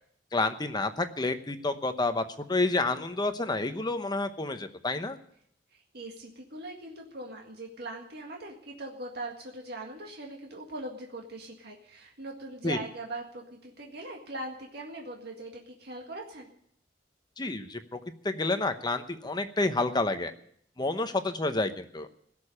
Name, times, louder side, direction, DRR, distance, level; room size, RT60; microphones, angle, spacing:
voice 1, 0.3-2.2 2.5-5.2 12.6-12.8 17.4-18.0 18.2-20.3 20.8-22.1, left 2 dB, 25° left, 8 dB, 0.9 m, -29 dB
voice 2, 5.7-16.5, right 2 dB, 60° right, 0 dB, 1.9 m, -41 dB
17.0 x 6.8 x 9.9 m, 0.67 s
head